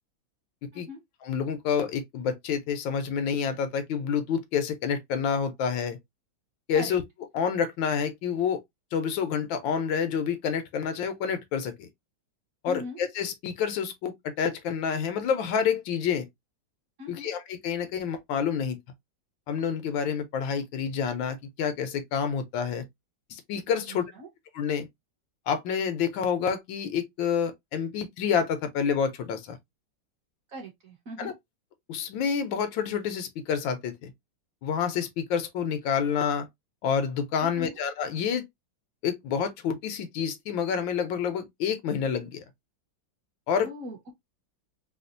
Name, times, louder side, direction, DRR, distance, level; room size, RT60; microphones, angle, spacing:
voice 1, 1.2-6.0 6.7-7.0 7.3-8.6 8.9-11.9 12.6-16.3 17.1-18.8 19.5-22.8 23.3-24.0 24.5-24.9 25.5-29.6 31.2-31.3 31.9-34.1 34.6-36.5 36.8-38.4 39.0-42.4 43.5-43.7, left 7 dB, 75° left, 1.4 m, -28 dB
voice 2, 12.7-13.0 17.0-17.3 23.9-24.3 30.5-31.3 37.4-37.8 43.6-44.1, left 1 dB, 50° right, 1.5 m, -40 dB
4.2 x 2.3 x 2.5 m
omnidirectional pair, 2.1 m